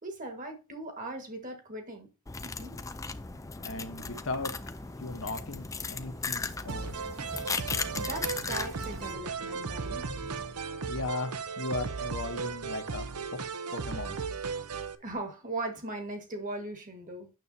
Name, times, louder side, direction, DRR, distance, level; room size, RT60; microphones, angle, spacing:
voice 1, 0.0-2.1 2.4-2.8 7.9-10.1 15.0-17.3, right 2 dB, 35° right, 1.7 m, -39 dB
sound 1, 2.3-9.1, left 4 dB, 15° left, 0.4 m, -37 dB
voice 2, 3.6-4.7 5.0-7.0 10.9-13.0 13.3-13.4 13.7-14.2, left 3 dB, 65° left, 1.1 m, -37 dB
sound 2, 3.9-10.5, equal, 60° right, 2.4 m, -52 dB
sound 3, 6.7-15.0, right 5 dB, 90° right, 0.8 m, -36 dB
9.2 x 6.9 x 2.7 m
head